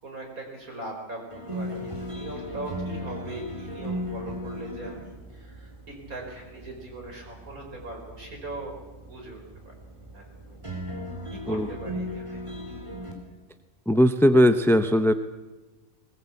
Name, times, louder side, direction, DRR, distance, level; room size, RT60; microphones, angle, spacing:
voice 1, 0.0-8.8 9.1-9.4 9.7-9.8 10.1-10.6 11.3-12.5, right 2 dB, 80° right, 1 dB, 5.3 m, -40 dB
sound 1, 1.3-13.1, equal, 20° right, 3.7 m, -37 dB
voice 2, 13.9-15.1, equal, 5° left, 9 dB, 0.4 m, -19 dB
20.0 x 20.0 x 8.4 m, 1.2 s
omnidirectional pair, 1.5 m